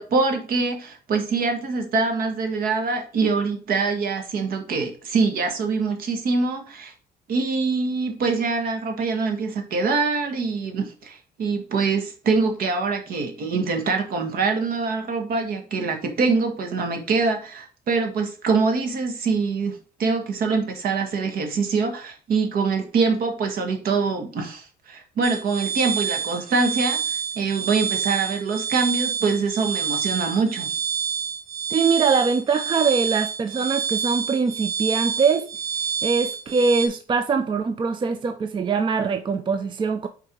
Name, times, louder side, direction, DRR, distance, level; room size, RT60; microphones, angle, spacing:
voice 1, 0.0-6.9 7.3-30.8, right 4 dB, 60° right, 1.5 m, -24 dB
sound 1, 25.2-36.9, right 6 dB, 80° right, 1.6 m, -28 dB
voice 2, 31.7-35.5 35.8-40.1, right 5 dB, 30° right, 0.4 m, -23 dB
4.6 x 4.5 x 5.1 m
cardioid pair, 110°, 17 cm